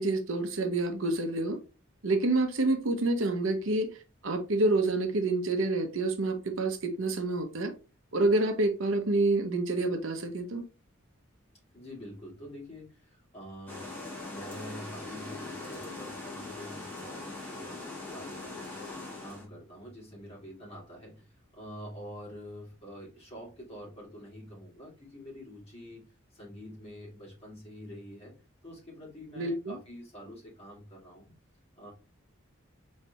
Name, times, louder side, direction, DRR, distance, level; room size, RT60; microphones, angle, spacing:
voice 1, 0.0-1.6 2.0-3.9 4.2-7.7 8.1-10.6 29.4-29.8, right 2 dB, 70° right, 0.8 m, -28 dB
voice 2, 11.7-14.0 14.3-18.7 19.2-26.0 26.3-28.3 28.6-31.4 31.8-31.9, equal, 30° left, 2.1 m, -46 dB
sound 1, 13.7-19.5, left 2 dB, 10° left, 1.3 m, -41 dB
4.4 x 3.2 x 2.8 m
head